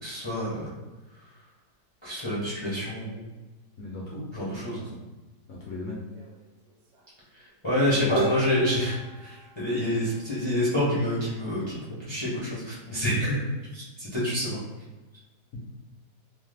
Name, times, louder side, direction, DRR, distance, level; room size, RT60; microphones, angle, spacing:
voice 1, 0.0-0.7 2.0-3.2 4.3-4.8 7.6-11.8 12.0-13.4 13.7-14.6, left 1 dB, 40° left, -8 dB, 0.4 m, -27 dB
voice 2, 3.8-5.0 5.5-6.0 7.9-8.2 9.9-10.2 15.5-15.7, left 2 dB, 70° left, -3 dB, 0.7 m, -38 dB
sound 1, 6.1-6.4 6.7-7.1 8.2-10.3, right 3 dB, 65° right, 1.1 m, -35 dB
3.0 x 2.0 x 3.2 m, 1.2 s
omnidirectional pair, 1.9 m